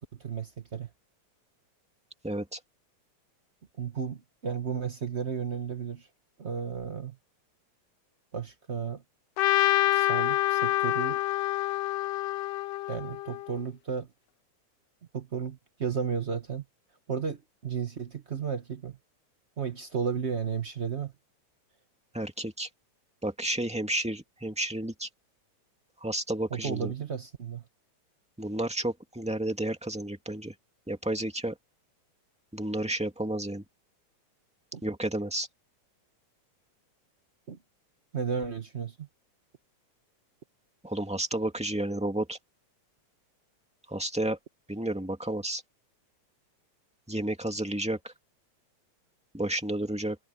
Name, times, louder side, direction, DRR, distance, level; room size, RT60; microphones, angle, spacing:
voice 1, 0.2-0.9 3.8-6.1 6.4-7.2 8.3-9.0 9.9-11.2 12.9-14.1 15.1-16.6 17.1-19.0 19.6-21.1 26.5-27.6 34.7-34.9 37.5-37.6 38.1-39.1, right 6 dB, 85° right, 0.6 m, -33 dB
voice 2, 2.2-2.6 22.1-22.7 23.2-25.1 26.0-26.9 28.4-30.5 30.9-31.5 32.5-33.6 34.8-35.5 40.8-42.4 43.9-44.4 44.7-45.6 47.1-48.1 49.3-50.2, right 1 dB, 5° right, 1.7 m, -31 dB
Trumpet, 9.4-13.5, left 16 dB, 80° left, 1.4 m, -27 dB
omnidirectional pair, 3.3 m